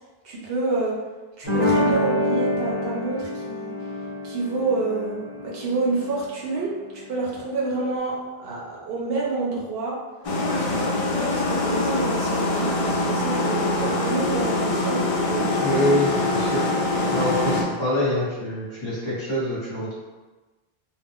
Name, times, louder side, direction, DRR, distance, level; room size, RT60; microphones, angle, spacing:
voice 1, 0.2-1.0 1.4-3.7 4.2-10.0 10.5-15.5, right 3 dB, 70° right, -4 dB, 0.8 m, -28 dB
sound 1, 1.4-6.5, left 1 dB, 15° right, 0.7 m, -26 dB
sound 2, 10.2-17.6, left 2 dB, 50° left, 0.4 m, -24 dB
voice 2, 15.6-16.7 17.1-19.9, left 1 dB, 30° left, -9 dB, 0.8 m, -25 dB
2.4 x 2.0 x 3.5 m, 1.2 s
omnidirectional pair, 1.1 m